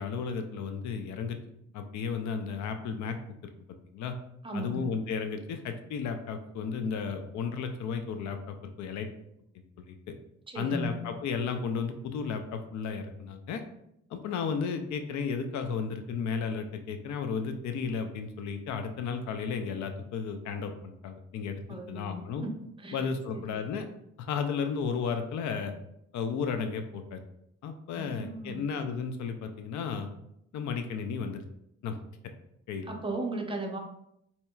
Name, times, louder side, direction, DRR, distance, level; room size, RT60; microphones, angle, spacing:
voice 1, 0.0-1.4 1.7-3.2 3.9-4.2 4.5-9.1 9.5-10.1 10.6-13.6 14.1-22.4 22.9-23.9 24.2-25.7 26.1-27.2 27.6-30.1 30.5-31.4 31.8-32.0 32.7-32.9, left 5 dB, 70° left, 7 dB, 0.5 m, -33 dB
voice 2, 4.4-4.9 10.5-11.0 21.7-23.6 27.9-28.7 32.8-33.8, right 2 dB, 15° right, 1 dB, 0.6 m, -37 dB
4.2 x 2.8 x 2.3 m, 0.78 s
cardioid pair, 90°, 30 cm